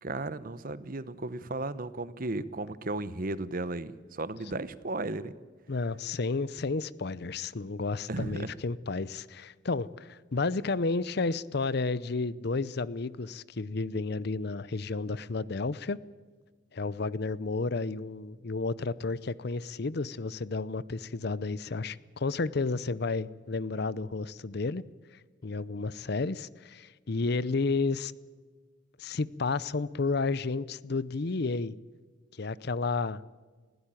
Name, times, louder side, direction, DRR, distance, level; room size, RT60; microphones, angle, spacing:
voice 1, 0.0-5.3 8.1-8.5, right 2 dB, 45° right, 16 dB, 0.9 m, -35 dB
voice 2, 5.7-16.0 16.7-24.8 25.4-28.1 29.0-31.7 32.3-33.2, left 3 dB, 55° left, 19 dB, 0.6 m, -31 dB
20.0 x 16.5 x 9.1 m, 1.5 s
head